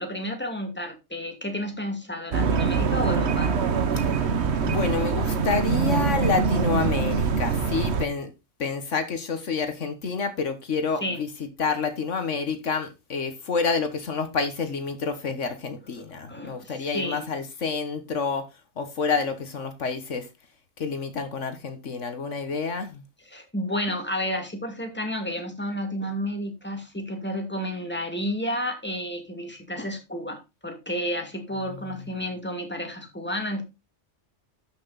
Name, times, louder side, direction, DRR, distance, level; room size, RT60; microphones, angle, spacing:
voice 1, 0.0-3.5 11.0-11.2 16.3-17.2 23.3-33.6, equal, 10° left, 2.4 m, -31 dB
sound 1, 2.3-8.1, right 5 dB, 60° right, 1.3 m, -24 dB
voice 2, 4.6-8.3 8.6-20.3 20.8-23.0 31.5-32.2, left 5 dB, 75° left, 1.6 m, -29 dB
12.0 x 6.0 x 4.0 m
omnidirectional pair, 1.3 m